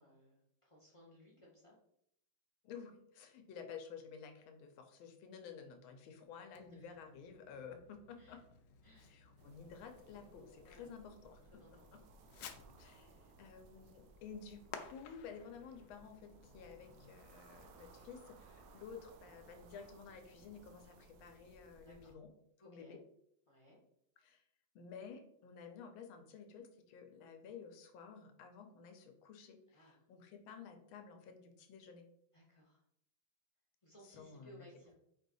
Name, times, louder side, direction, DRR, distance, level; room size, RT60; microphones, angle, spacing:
voice 1, 0.0-1.8 6.7-6.9 8.2-8.4 8.8-9.2 10.6-10.9 11.5-12.0 21.8-22.2 22.6-23.0 23.5-23.8 29.7-30.0 32.3-32.8 33.8-34.9, equal, 40° left, -3 dB, 0.4 m, -62 dB
voice 2, 2.6-8.4 9.0-11.4 11.9-12.0 12.8-22.3 22.6-23.0 24.2-24.4 24.7-32.0 34.2-34.7, left 6 dB, 90° left, 5 dB, 1.5 m, -53 dB
Fireworks, 6.5-17.2, left 7 dB, 75° left, 1.1 m, -57 dB
sound 1, 9.4-22.1, right 3 dB, 75° right, 1.1 m, -62 dB
4.8 x 2.7 x 4.0 m, 0.73 s
omnidirectional pair, 2.2 m